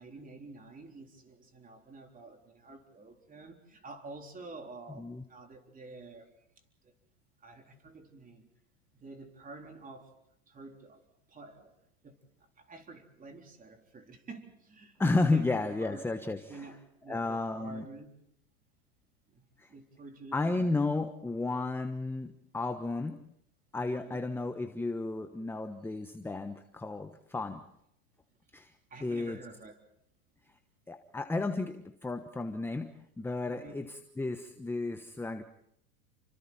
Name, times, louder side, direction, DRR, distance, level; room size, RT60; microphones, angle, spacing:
voice 1, 0.0-6.3 6.8-6.9 7.4-8.5 8.9-10.1 10.5-11.0 11.3-11.7 12.0-12.2 12.6-15.0 15.3-15.5 15.8-16.0 16.5-18.1 19.3-20.8 23.9-24.3 28.9-29.8 33.5-33.8, right 3 dB, 20° right, 4 dB, 3.8 m, -49 dB
voice 2, 15.0-16.7 17.1-17.8 19.6-19.7 20.3-23.2 23.7-27.6 28.5-28.7 29.0-29.4 30.9-35.4, left 3 dB, 5° left, 7 dB, 1.1 m, -33 dB
29.5 x 25.0 x 4.3 m, 0.75 s
hypercardioid pair, 120°, 41 cm